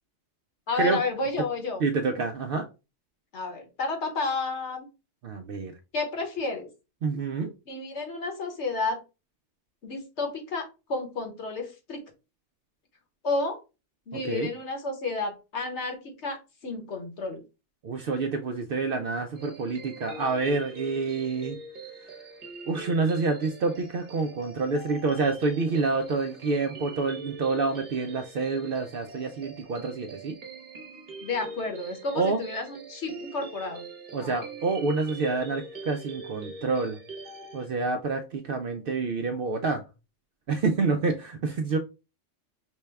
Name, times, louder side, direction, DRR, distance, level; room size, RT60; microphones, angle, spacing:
voice 1, 0.7-1.8 3.3-4.9 5.9-6.7 7.7-9.0 9.8-12.0 13.2-13.6 14.1-16.4 16.6-17.4 31.2-33.8 34.2-34.4, left 3 dB, 65° left, 4 dB, 1.3 m, -31 dB
voice 2, 1.8-2.7 5.2-5.7 7.0-7.5 14.2-14.5 17.8-21.6 22.7-30.4 32.1-32.4 34.1-37.0 37.5-39.8 40.5-41.8, right 4 dB, 60° right, 5 dB, 0.6 m, -28 dB
sound 1, 19.3-37.7, right 3 dB, 40° right, 1.0 m, -43 dB
5.3 x 2.2 x 3.4 m, 0.29 s
omnidirectional pair, 1.3 m